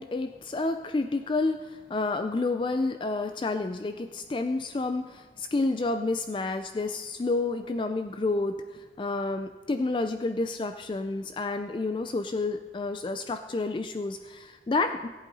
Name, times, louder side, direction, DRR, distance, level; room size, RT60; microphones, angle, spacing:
voice 1, 0.0-15.1, left 3 dB, 25° left, 8 dB, 0.3 m, -30 dB
17.5 x 8.2 x 4.0 m, 1.4 s
head